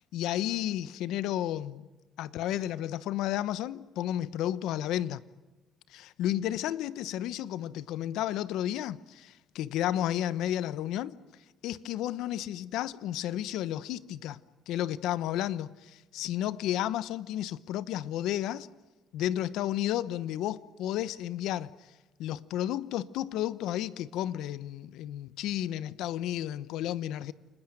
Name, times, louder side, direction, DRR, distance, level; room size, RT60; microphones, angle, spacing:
voice 1, 0.1-1.9 2.2-5.2 5.9-11.1 11.6-14.4 14.7-18.7 19.1-21.7 22.2-27.3, left 12 dB, 80° left, 1.0 m, -32 dB
30.0 x 20.5 x 9.2 m
cardioid pair, 85°, 0 cm